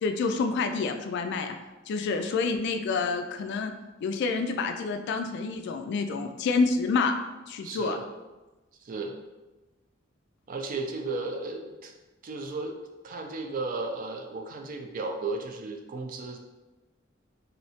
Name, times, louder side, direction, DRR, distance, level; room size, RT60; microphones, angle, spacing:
voice 1, 0.0-1.6 1.9-3.7 4.0-7.2 7.5-8.0, left 4 dB, 60° left, 6 dB, 0.3 m, -28 dB
voice 2, 7.6-8.0 8.8-9.2 10.5-11.9 12.2-12.8 13.0-16.4, right 3 dB, 45° right, 4 dB, 0.4 m, -34 dB
3.2 x 2.7 x 2.8 m, 1.1 s
head